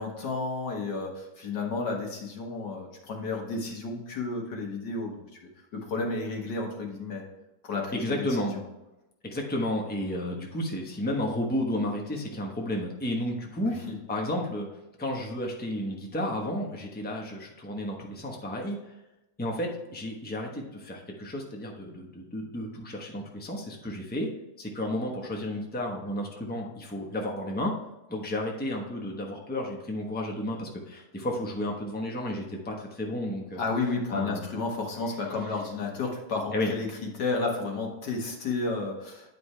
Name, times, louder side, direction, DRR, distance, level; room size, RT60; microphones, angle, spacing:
voice 1, 0.0-5.4 5.7-7.2 7.6-8.3 8.5-8.6 13.6-13.9 33.6-39.3, left 3 dB, 80° left, 0 dB, 2.1 m, -32 dB
voice 2, 7.9-8.6 9.2-14.7 15.0-18.8 19.4-24.3 24.6-27.7 28.1-33.6 34.1-34.4 36.5-36.7, left 1 dB, 5° left, 0 dB, 0.9 m, -32 dB
9.5 x 5.2 x 3.3 m, 0.96 s
omnidirectional pair, 1.8 m